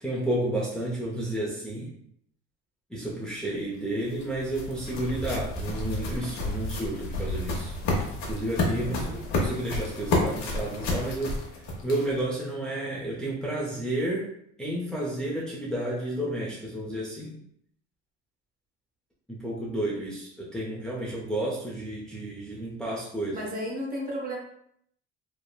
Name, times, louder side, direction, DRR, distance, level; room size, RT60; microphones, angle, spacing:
voice 1, 0.0-1.9 2.9-7.7 8.3-11.4 11.8-14.3 14.6-17.4 19.3-23.5, right 1 dB, ahead, -6 dB, 0.5 m, -31 dB
sound 1, 3.7-12.3, left 2 dB, 65° left, 0.8 m, -30 dB
voice 2, 8.8-9.3 23.3-24.4, equal, 30° right, -2 dB, 0.8 m, -34 dB
3.1 x 2.1 x 2.2 m, 0.69 s
supercardioid pair, 100°, 30 cm